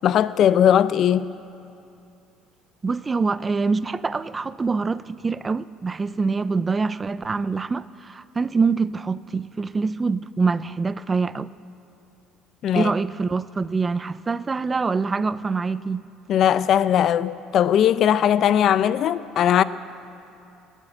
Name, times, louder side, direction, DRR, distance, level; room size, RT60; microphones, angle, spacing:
voice 1, 0.0-1.3 12.6-12.9 16.3-19.6, left 10 dB, 55° left, 0.5 m, -19 dB
voice 2, 2.8-11.5 12.8-16.0, right 4 dB, 25° right, 0.4 m, -25 dB
19.5 x 8.2 x 8.6 m
cardioid pair, 110°, 0 cm